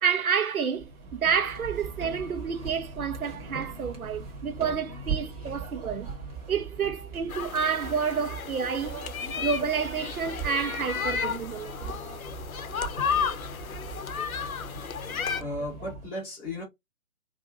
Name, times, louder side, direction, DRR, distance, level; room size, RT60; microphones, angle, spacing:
voice 1, 0.0-6.1 6.5-9.0 9.4-11.9, right 6 dB, 85° right, 0.7 m, -29 dB
sound 1, 0.7-16.1, right 4 dB, 25° right, 0.8 m, -39 dB
sound 2, 7.3-15.4, left 7 dB, 80° left, 0.6 m, -33 dB
voice 2, 15.4-16.6, left 1 dB, 10° left, 0.7 m, -35 dB
2.7 x 2.5 x 2.3 m
figure-of-eight pair, 140°, 42 cm